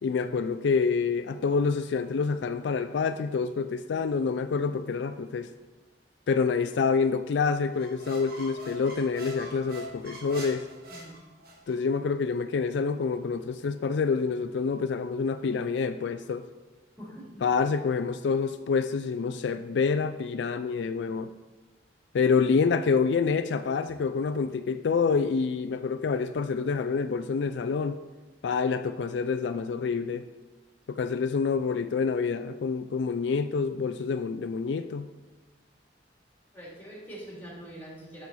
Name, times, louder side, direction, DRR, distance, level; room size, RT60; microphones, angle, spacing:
voice 1, 0.0-5.5 6.3-10.7 11.7-16.4 17.4-21.3 22.1-28.0 28.4-30.2 30.9-35.1, left 5 dB, 75° left, 10 dB, 0.4 m, -27 dB
sound 1, 7.7-11.8, right 1 dB, 55° right, 1.5 m, -43 dB
voice 2, 10.9-11.2 17.0-17.4 36.5-38.3, right 1 dB, 10° left, -5 dB, 3.0 m, -44 dB
11.5 x 6.3 x 4.1 m, 1.2 s
head